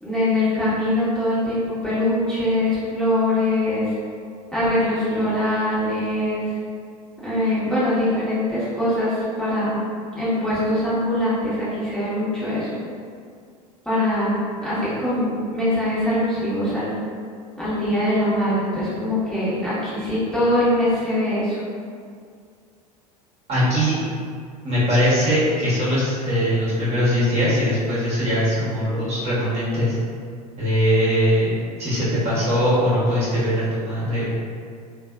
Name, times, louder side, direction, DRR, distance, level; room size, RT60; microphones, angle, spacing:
voice 1, 0.0-3.9 4.5-6.5 7.2-9.8 10.1-12.8 13.8-14.4 14.6-16.9 17.6-21.6, left 1 dB, 5° left, -13 dB, 1.3 m, -22 dB
voice 2, 23.5-23.9 24.6-30.0 30.6-31.5 31.8-34.2, equal, 30° right, -10 dB, 1.3 m, -21 dB
3.3 x 2.4 x 2.3 m, 2.2 s
figure-of-eight pair, 75°, 21 cm